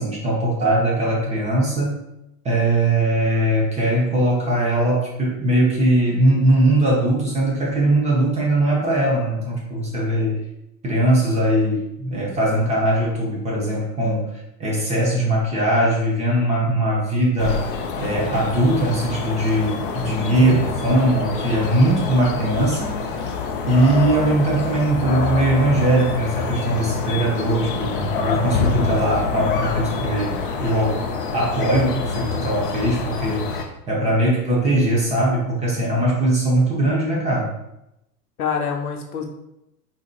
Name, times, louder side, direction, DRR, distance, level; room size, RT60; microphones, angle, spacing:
voice 1, 0.0-2.0 2.4-10.4 10.8-14.3 14.6-17.6 18.0-23.0 23.7-31.1 31.3-37.5, right 1 dB, 15° right, -4 dB, 0.8 m, -20 dB
sound 1, 17.4-33.6, left 5 dB, 35° left, 0.4 m, -26 dB
voice 2, 20.3-20.8 38.4-39.3, left 6 dB, 65° left, 2 dB, 0.8 m, -26 dB
4.1 x 3.6 x 2.2 m, 0.86 s
figure-of-eight pair, 95°, 49 cm